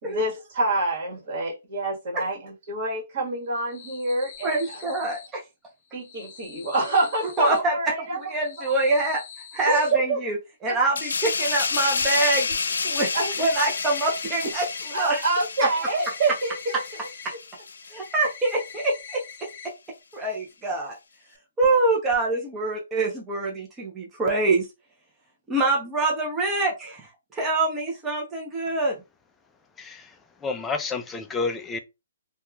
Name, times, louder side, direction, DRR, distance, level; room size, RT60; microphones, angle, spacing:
voice 1, 0.0-4.6 4.9-5.0 5.9-8.2 9.6-10.2 10.7-10.8 13.1-13.3 14.9-16.7, right 2 dB, 45° right, 1.4 m, -26 dB
sound 1, 3.4-5.3 5.8-7.6 8.2-9.9 12.0-12.1 12.5-12.6 13.0-15.0 15.3-17.4 17.7-19.7 20.0-20.1 20.5-20.6 21.6-21.8 22.1-22.2, left 6 dB, 45° left, 0.7 m, -44 dB
voice 2, 4.4-5.4 7.2-10.4 10.6-12.5 12.8-15.2 15.6-15.7 17.9-19.7 20.1-21.0 21.6-24.7 25.5-29.0, right 2 dB, 15° right, 0.7 m, -25 dB
sound 2, 11.0-18.1 18.5-18.7, left 5 dB, 80° left, 0.3 m, -30 dB
voice 3, 29.8-30.1 30.4-31.8, left 4 dB, 10° left, 0.4 m, -30 dB
2.8 x 2.3 x 2.3 m
hypercardioid pair, 145°, 0 cm